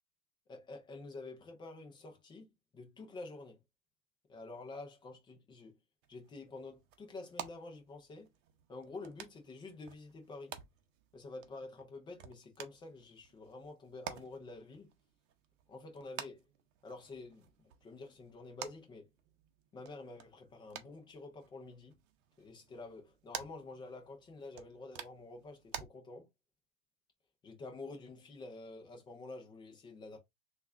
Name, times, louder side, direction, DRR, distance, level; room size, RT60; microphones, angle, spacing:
voice 1, 0.5-3.6 4.3-5.8 6.1-8.3 8.7-10.5 11.1-14.9 15.7-16.4 16.8-19.1 19.7-21.9 22.4-26.3 27.4-30.2, left 3 dB, 10° left, 0.3 m, -49 dB
sound 1, 6.0-25.9, right 9 dB, 50° right, 0.7 m, -51 dB
3.4 x 2.4 x 3.1 m
supercardioid pair, 125°, 50 cm